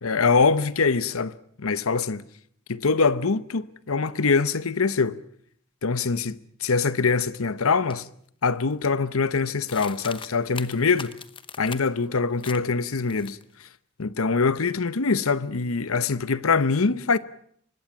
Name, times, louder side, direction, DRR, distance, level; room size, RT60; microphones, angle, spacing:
voice 1, 0.0-2.2 2.7-5.2 5.8-6.3 6.6-8.1 8.4-11.1 11.6-13.7 14.0-17.2, left 4 dB, 80° left, 0.9 m, -23 dB
sound 1, 7.9-8.0 8.4-8.9 9.7-12.0 12.4-12.7 12.9-13.7, left 6 dB, 25° left, 0.9 m, -40 dB
24.5 x 20.0 x 7.2 m
head